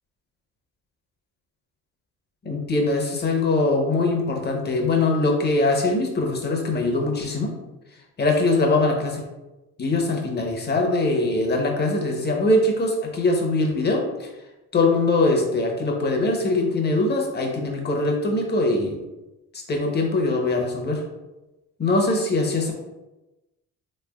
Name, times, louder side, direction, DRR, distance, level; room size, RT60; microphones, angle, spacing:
voice 1, 2.4-7.5 8.2-9.2 9.8-14.3 14.7-19.0 19.7-21.0 21.8-22.7, left 2 dB, 35° left, 1 dB, 0.8 m, -22 dB
3.3 x 3.2 x 2.3 m, 1.0 s
cardioid pair, 90°, 30 cm